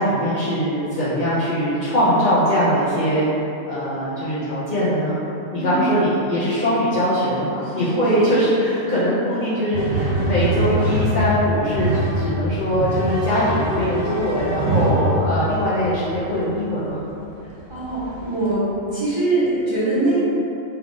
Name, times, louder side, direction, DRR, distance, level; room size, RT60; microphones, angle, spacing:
voice 1, 0.0-3.3 3.7-5.1 5.5-17.0, equal, 50° left, -11 dB, 0.6 m, -21 dB
voice 2, 5.5-5.9 7.6-8.3 17.7-20.2, right 2 dB, 30° right, -12 dB, 0.7 m, -23 dB
sound 1, 9.7-15.7 17.0-17.1 17.8-18.5, right 1 dB, 90° right, 1.0 m, -23 dB
3.4 x 2.3 x 3.7 m, 2.8 s
omnidirectional pair, 1.3 m